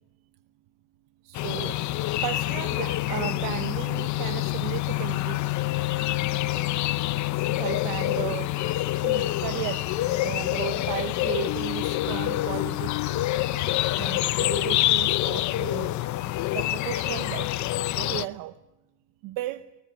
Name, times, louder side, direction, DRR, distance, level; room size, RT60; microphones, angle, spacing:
voice 1, 1.2-5.4 7.5-8.8 9.0-13.0 14.0-16.2 16.5-17.5 17.9-18.6 19.2-19.7, right 16 dB, 75° right, 0.9 m, -35 dB
sound 1, 1.3-18.3, left 16 dB, 60° left, 0.8 m, -27 dB
sound 2, 5.6-13.1, left 14 dB, 75° left, 1.5 m, -37 dB
20.0 x 19.0 x 9.4 m
cardioid pair, 115°, 34 cm